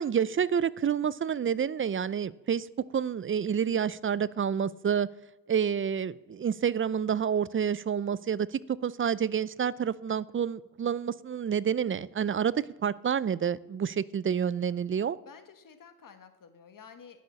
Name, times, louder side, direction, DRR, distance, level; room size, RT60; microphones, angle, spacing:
voice 1, 0.0-5.1 5.5-15.2, right 7 dB, 30° right, 0.5 m, -29 dB
voice 2, 15.2-17.2, left 6 dB, 45° left, 1.6 m, -51 dB
11.0 x 6.4 x 6.5 m
supercardioid pair, 55°, 44 cm